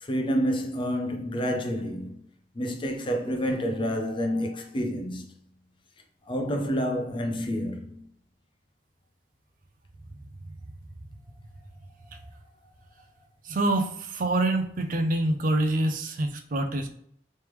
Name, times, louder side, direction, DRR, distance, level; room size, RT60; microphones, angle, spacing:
voice 1, 0.0-2.2 2.5-5.3 6.3-8.1, equal, 30° left, 0.5 m, -28 dB
voice 2, 13.4-16.9, right 2 dB, 50° right, 0.5 m, -26 dB
3.4 x 3.2 x 3.0 m
head